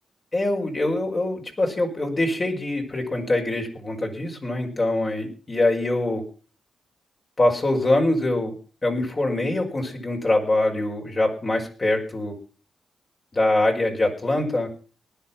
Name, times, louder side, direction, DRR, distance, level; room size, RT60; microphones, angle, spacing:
voice 1, 0.3-6.2 7.4-8.5 8.8-12.4 13.3-14.7, left 2 dB, 35° left, 1 dB, 5.4 m, -23 dB
19.0 x 11.0 x 6.0 m, 0.39 s
cardioid pair, 75°, 0 cm